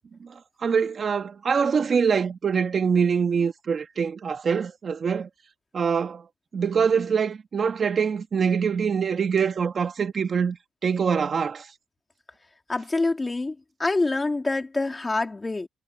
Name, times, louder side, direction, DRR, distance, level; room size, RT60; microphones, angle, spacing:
voice 1, 0.6-5.3 5.7-6.2 6.5-10.6 10.8-11.7, right 6 dB, 35° right, 1.9 m, -24 dB
voice 2, 12.7-15.7, left 3 dB, 15° left, 3.4 m, -26 dB
cardioid pair, 155°, 0 cm